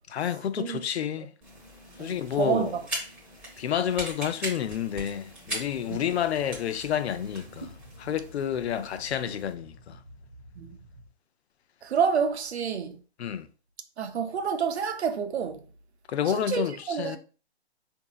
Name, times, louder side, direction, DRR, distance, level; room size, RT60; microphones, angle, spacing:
voice 1, 0.1-1.3 2.0-2.7 3.6-7.7 8.0-10.0 13.2-13.5 16.1-17.2, left 9 dB, 75° left, 0.5 m, -29 dB
sound 1, 1.4-9.5, right 1 dB, 5° right, 0.8 m, -41 dB
voice 2, 2.0-2.8 5.9-6.0 10.6-10.8 11.8-13.0 14.0-15.6 16.3-17.2, right 7 dB, 75° right, 0.7 m, -28 dB
sound 2, 5.4-11.1, equal, 25° right, 0.3 m, -51 dB
3.8 x 2.7 x 2.3 m
hypercardioid pair, 150°, 33 cm